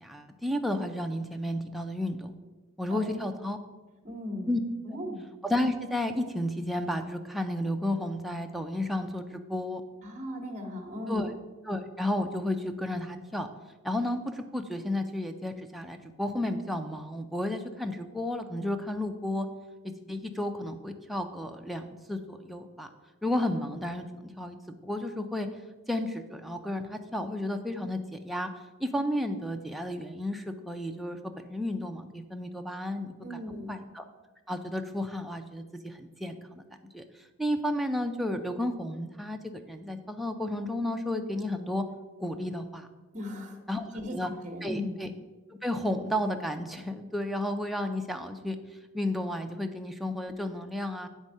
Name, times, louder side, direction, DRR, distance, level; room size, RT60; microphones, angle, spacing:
voice 1, 0.0-2.3 2.8-3.6 4.5-4.6 5.4-9.8 11.1-11.3 11.6-13.5 13.8-19.5 20.1-22.9 23.2-24.0 24.4-24.6 24.8-25.5 25.9-28.5 28.8-33.4 33.7-34.0 34.5-36.6 36.9-37.1 37.4-41.8 42.2-42.9 43.7-44.3 44.6-45.1 45.6-48.6 48.9-51.1, left 1 dB, ahead, 4 dB, 0.4 m, -32 dB
voice 2, 4.0-4.5 4.9-5.2 10.0-11.3 33.2-33.7 43.1-43.6 43.9-45.0, left 1 dB, 35° right, 3 dB, 1.1 m, -37 dB
9.7 x 3.6 x 5.4 m, 1.2 s
head